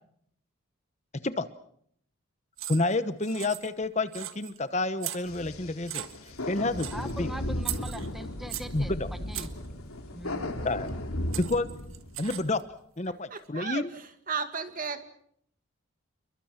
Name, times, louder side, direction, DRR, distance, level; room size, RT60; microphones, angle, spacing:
sound 1, 2.6-3.0 3.2-3.8 4.1-4.6 5.0-5.5 5.9-6.4 6.8-7.1 7.6-8.8 9.3-9.7 10.9-11.0 11.3-12.6, right 14 dB, 75° right, 1.6 m, -38 dB
voice 1, 2.7-6.9 7.2-7.3 8.7-9.1 10.6-10.9 11.4-11.7 12.2-12.6 13.0-13.9, left 2 dB, 30° left, 12 dB, 1.0 m, -29 dB
sound 2, 5.3-12.4, left 1 dB, 90° left, 3.1 m, -36 dB
voice 2, 6.9-9.5 10.1-10.6, equal, ahead, 8 dB, 1.2 m, -42 dB
voice 3, 13.3-13.8 14.3-15.0, right 5 dB, 40° right, 8 dB, 2.2 m, -33 dB
29.0 x 23.0 x 5.9 m, 0.67 s
head